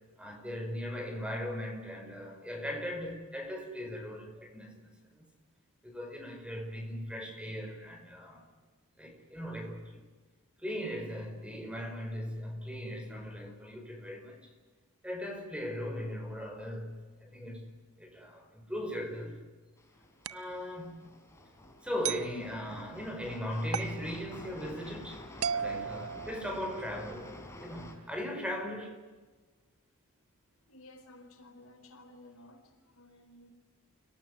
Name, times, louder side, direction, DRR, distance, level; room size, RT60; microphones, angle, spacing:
voice 1, 0.2-5.2 5.8-8.4 9.0-10.0 10.6-14.5 15.0-17.7 18.0-19.4 20.3-21.0 21.8-29.0, equal, 5° right, 5.2 m, -39 dB
sound 1, 19.8-28.0, left 1 dB, 15° left, 4.1 m, -49 dB
sound 2, 20.2-20.5 22.0-22.3 23.7-24.0 25.4-26.8, right 7 dB, 75° right, 0.7 m, -35 dB
voice 2, 30.7-33.5, left 1 dB, 80° left, 4.6 m, -55 dB
29.5 x 18.5 x 9.9 m
head